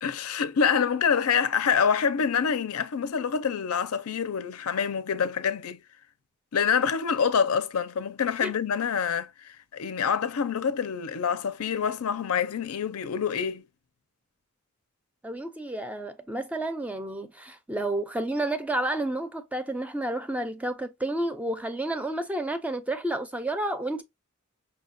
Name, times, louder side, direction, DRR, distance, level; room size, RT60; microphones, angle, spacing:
voice 1, 0.0-5.8 6.5-13.6, left 6 dB, 90° left, 0.5 m, -26 dB
voice 2, 15.2-24.0, right 1 dB, 5° right, 0.4 m, -30 dB
5.4 x 2.3 x 2.6 m
head